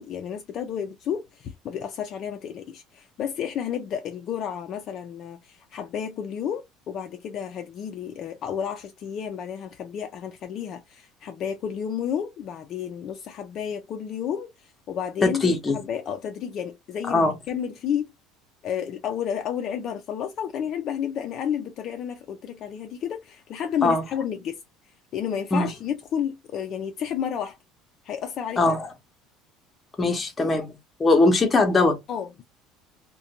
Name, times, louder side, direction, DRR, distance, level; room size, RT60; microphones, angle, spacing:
voice 1, 0.0-18.1 18.6-24.6 25.1-27.6 28.0-28.7 32.1-32.4, left 8 dB, 45° left, 0.4 m, -31 dB
voice 2, 15.2-15.8 17.1-17.3 23.8-24.0 25.5-25.7 28.6-28.9 30.0-30.7 31.0-32.0, left 2 dB, 15° left, 0.7 m, -20 dB
2.5 x 2.2 x 2.8 m
cardioid pair, 150°, 0 cm